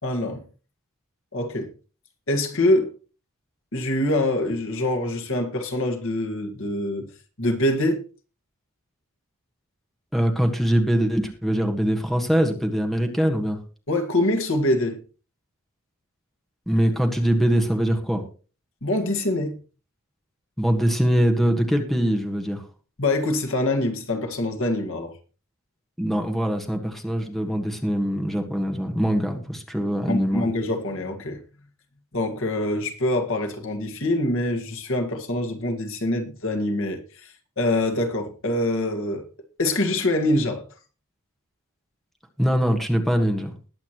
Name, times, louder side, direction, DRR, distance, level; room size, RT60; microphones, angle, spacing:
voice 1, 0.0-0.4 1.3-1.7 2.3-2.9 3.7-7.1 7.4-8.0 13.9-15.0 18.8-19.5 23.0-25.1 30.1-31.4 32.1-39.2 39.6-40.6, left 1 dB, 65° left, 1.8 m, -24 dB
voice 2, 10.1-13.6 16.7-18.2 20.6-22.6 26.0-30.5 42.4-43.5, equal, ahead, 1.5 m, -23 dB
20.0 x 8.3 x 3.0 m
head